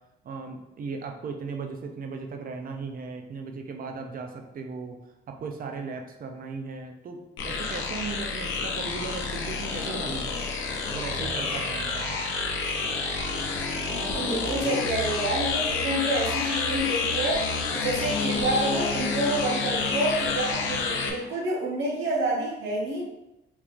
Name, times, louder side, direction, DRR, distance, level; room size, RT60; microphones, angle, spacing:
voice 1, 0.2-5.0 5.3-10.5 10.9-12.2, right 4 dB, 45° right, 4 dB, 0.5 m, -37 dB
sound 1, 7.4-21.1, left 4 dB, 80° left, 0.5 m, -29 dB
voice 2, 13.9-17.5 17.7-23.0, right 1 dB, 80° right, -4 dB, 1.1 m, -28 dB
3.4 x 3.0 x 2.5 m, 0.91 s
cardioid pair, 90°, 20 cm